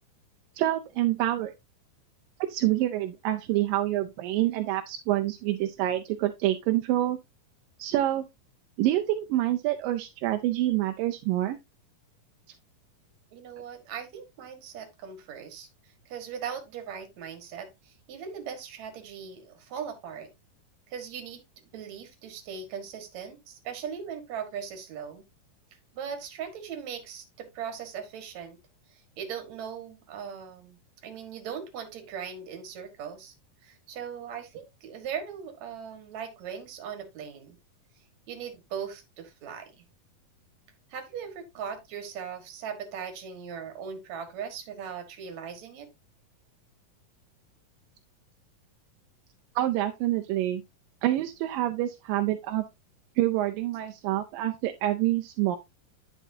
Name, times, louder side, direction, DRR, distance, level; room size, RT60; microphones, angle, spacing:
voice 1, 0.6-1.5 2.4-7.2 7.8-8.2 8.8-11.6 49.6-50.6 51.0-52.6 53.2-55.6, right 14 dB, 85° right, 2.3 m, -27 dB
voice 2, 13.3-15.7 16.1-20.3 20.9-21.4 21.7-25.2 25.9-28.6 28.9-30.8 31.0-33.3 33.6-37.6 38.3-39.7 40.9-45.9, right 7 dB, 60° right, 2.7 m, -39 dB
10.0 x 5.9 x 2.7 m
omnidirectional pair, 4.0 m